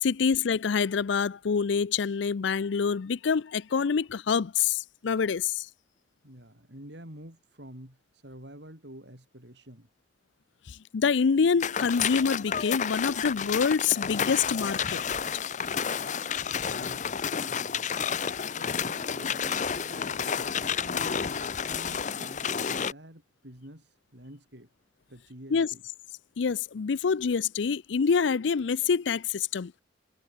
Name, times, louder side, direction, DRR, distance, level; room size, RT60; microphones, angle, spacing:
voice 1, 0.0-5.7 10.7-15.0 25.5-25.7 26.4-29.7, left 6 dB, 80° left, 0.5 m, -26 dB
voice 2, 6.2-9.9 16.7-17.9 18.5-21.3 21.6-24.7 25.1-25.8, right 1 dB, 70° right, 7.8 m, -48 dB
sound 1, 11.6-22.9, left 7 dB, 40° left, 0.6 m, -30 dB
head